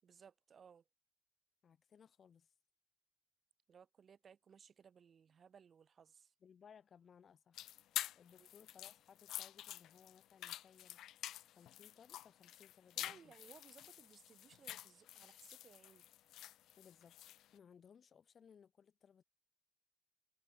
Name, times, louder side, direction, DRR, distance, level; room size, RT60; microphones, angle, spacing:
voice 1, 0.0-0.8 3.7-6.3 8.4-8.7 13.0-16.0, right 7 dB, 50° right, 0.5 m, -62 dB
voice 2, 1.6-2.5 6.4-7.7 8.2-13.3 16.8-17.2 17.5-19.2, left 7 dB, 50° left, 2.1 m, -64 dB
sound 1, 7.5-17.5, left 13 dB, 85° left, 0.3 m, -48 dB
cardioid pair, 90°, 0 cm